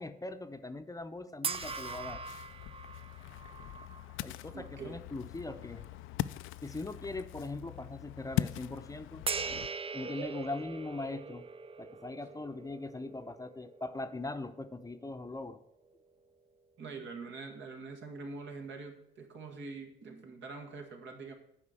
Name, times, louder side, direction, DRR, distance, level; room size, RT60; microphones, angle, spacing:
voice 1, 0.0-2.2 4.2-5.8 6.6-11.5 11.8-15.6, left 2 dB, 15° left, 8 dB, 0.7 m, -41 dB
sound 1, 1.4-5.0 5.5-5.7 9.3-15.7, right 5 dB, 30° right, 0.5 m, -41 dB
Ocean, 1.5-9.7, left 14 dB, 85° left, 0.4 m, -41 dB
voice 2, 4.5-5.0 16.8-21.3, right 4 dB, 70° right, 3 dB, 2.0 m, -44 dB
9.8 x 5.0 x 7.7 m, 0.79 s
cardioid pair, 90°, 20 cm